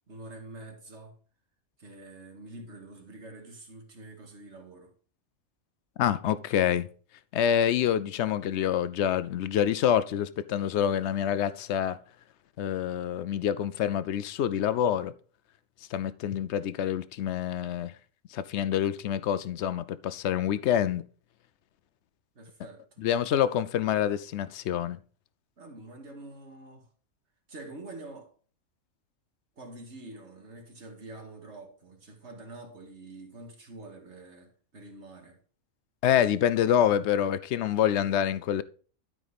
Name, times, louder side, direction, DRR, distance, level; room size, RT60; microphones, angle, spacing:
voice 1, 0.1-1.1 1.8-4.9 22.4-23.1 25.6-26.9 27.5-28.3 29.6-35.4, right 2 dB, 55° right, 2.3 m, -46 dB
voice 2, 6.0-6.9 7.3-12.0 12.6-15.1 15.9-17.9 18.3-21.0 23.0-25.0 36.0-38.6, left 9 dB, 65° left, 0.7 m, -26 dB
12.5 x 5.0 x 4.1 m
omnidirectional pair, 1.4 m